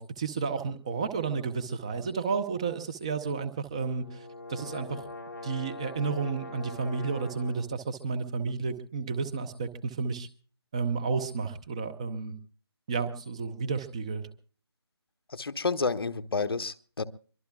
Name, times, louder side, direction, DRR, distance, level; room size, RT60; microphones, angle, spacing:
voice 1, 0.0-5.1 5.4-10.3 10.7-12.4 12.9-14.3, right 5 dB, 15° right, 9 dB, 0.7 m, -32 dB
sound 1, 3.8-7.7, left 2 dB, 40° left, 4.3 m, -43 dB
voice 2, 15.3-17.0, left 4 dB, 60° left, 10 dB, 1.1 m, -30 dB
24.0 x 22.5 x 2.3 m, 0.44 s
figure-of-eight pair, 170°, 14 cm